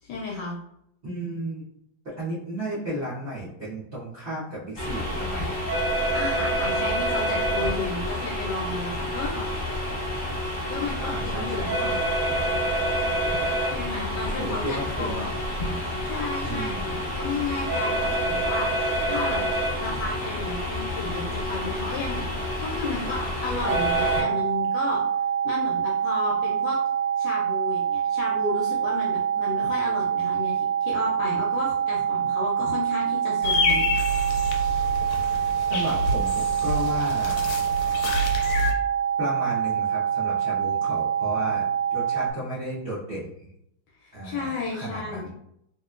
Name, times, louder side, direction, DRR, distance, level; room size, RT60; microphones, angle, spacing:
voice 1, 0.0-0.5 5.8-9.3 10.7-12.0 13.6-15.2 15.8-19.4 19.8-25.0 25.4-26.8 27.2-33.9 44.0-45.3, left 3 dB, 70° left, -2 dB, 1.0 m, -33 dB
voice 2, 1.0-1.7 2.0-5.8 9.3-9.6 11.0-11.9 14.4-15.3 16.4-16.8 35.7-37.5 39.2-43.5 44.1-45.3, equal, 50° right, -9 dB, 0.7 m, -34 dB
sound 1, 4.8-24.2, equal, 35° left, 0.8 m, -28 dB
sound 2, 23.6-42.3, right 8 dB, 85° right, 0.8 m, -25 dB
sound 3, 33.4-38.7, left 1 dB, 90° left, 1.4 m, -27 dB
3.0 x 2.8 x 2.4 m, 0.75 s
omnidirectional pair, 2.2 m